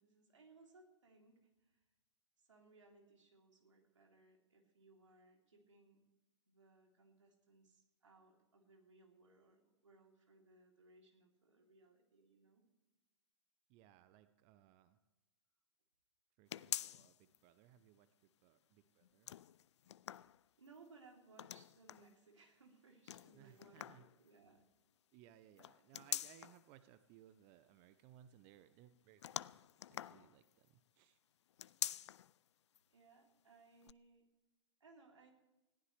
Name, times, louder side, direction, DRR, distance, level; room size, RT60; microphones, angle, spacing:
voice 1, 0.0-1.8 2.4-6.0 6.5-12.6 20.1-24.6 32.9-34.3 34.8-35.3, right 3 dB, 80° right, 1 dB, 3.3 m, -65 dB
voice 2, 13.7-15.0 16.4-19.3 23.3-24.1 25.1-29.6 29.9-31.2, right 12 dB, 40° right, 12 dB, 0.7 m, -64 dB
sound 1, 16.5-17.4 17.8-17.9 19.0-20.8 21.3-22.1 23.1-24.1 25.6-26.7 29.2-30.7 31.5-32.3 32.8-32.9 33.8-33.9, left 11 dB, 70° left, 0.4 m, -45 dB
20.5 x 15.0 x 3.3 m, 1.1 s
figure-of-eight pair, 105°, 15 cm